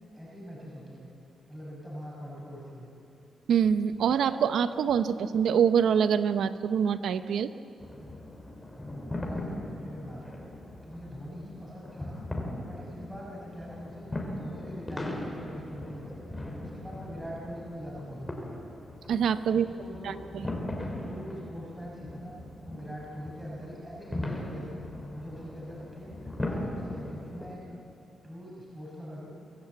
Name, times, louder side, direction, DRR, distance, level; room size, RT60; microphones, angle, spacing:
voice 1, 0.1-1.1 1.5-2.9 7.9-8.1 8.9-10.5 10.8-12.2 12.7-14.1 14.4-16.2 16.5-18.7 19.5-20.6 21.0-22.4 22.6-24.8 25.1-27.8 28.2-29.3, equal, 5° right, -5 dB, 5.6 m, -42 dB
voice 2, 3.5-7.5 19.1-19.7 20.0-20.1, right 7 dB, 80° right, 11 dB, 0.8 m, -25 dB
sound 1, 7.8-27.6, left 1 dB, 15° left, 3.6 m, -39 dB
24.5 x 14.5 x 8.0 m, 2.7 s
cardioid pair, 105°, 0 cm